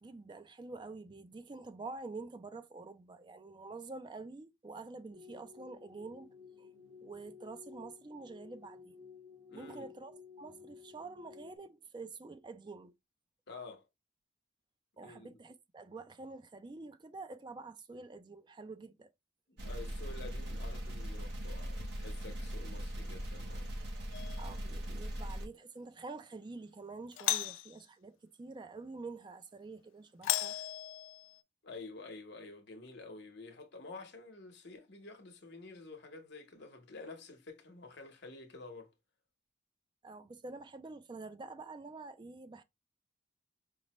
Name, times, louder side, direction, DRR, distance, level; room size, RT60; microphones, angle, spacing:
voice 1, 0.0-6.7 7.0-9.0 9.5-12.9 15.0-19.1 24.4-30.6 40.0-42.6, right 3 dB, 25° right, 0.3 m, -47 dB
sound 1, 5.1-11.6, left 6 dB, 75° right, 1.5 m, -54 dB
voice 2, 9.5-9.9 13.5-13.8 15.0-15.4 19.5-23.7 31.6-38.9, left 3 dB, 60° left, 0.9 m, -49 dB
sound 2, 19.6-25.5, equal, 60° right, 0.8 m, -40 dB
Doorbell, 24.1-24.6 27.1-27.7 30.2-31.4, left 13 dB, 85° left, 0.3 m, -35 dB
5.2 x 2.1 x 2.9 m
head